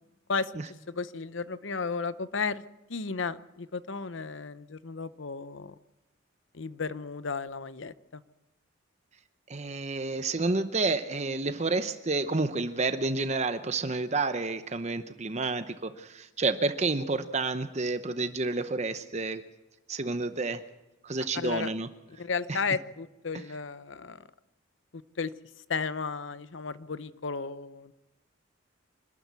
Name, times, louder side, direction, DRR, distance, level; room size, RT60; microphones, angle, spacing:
voice 1, 0.9-2.6 2.9-5.7 6.5-8.2 21.3-21.7 22.1-24.2 25.2-25.3 25.7-27.9, left 5 dB, 70° left, 15 dB, 0.8 m, -34 dB
voice 2, 9.5-19.4 19.9-20.6 21.0-21.9 22.5-22.6, right 3 dB, 35° right, 10 dB, 0.8 m, -30 dB
25.5 x 12.5 x 8.4 m, 1.0 s
head